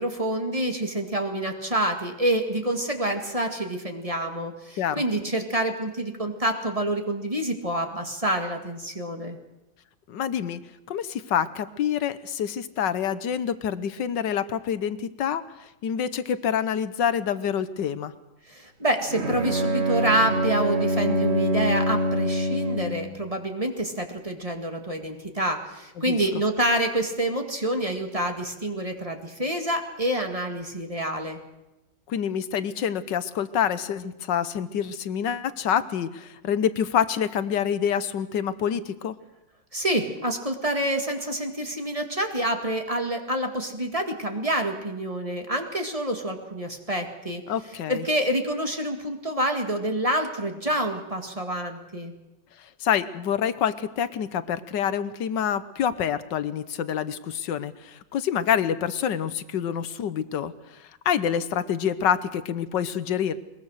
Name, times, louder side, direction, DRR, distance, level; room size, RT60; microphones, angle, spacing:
voice 1, 0.0-9.4 18.5-31.4 39.7-47.4 47.9-52.1, right 1 dB, 20° right, 4 dB, 2.0 m, -27 dB
voice 2, 10.1-10.6 10.9-18.1 26.1-26.2 32.1-39.2 47.5-48.0 52.6-63.4, left 8 dB, 70° left, 14 dB, 1.6 m, -27 dB
Bowed string instrument, 19.1-23.2, equal, 35° right, 1.9 m, -25 dB
22.0 x 21.5 x 6.5 m, 0.95 s
omnidirectional pair, 2.0 m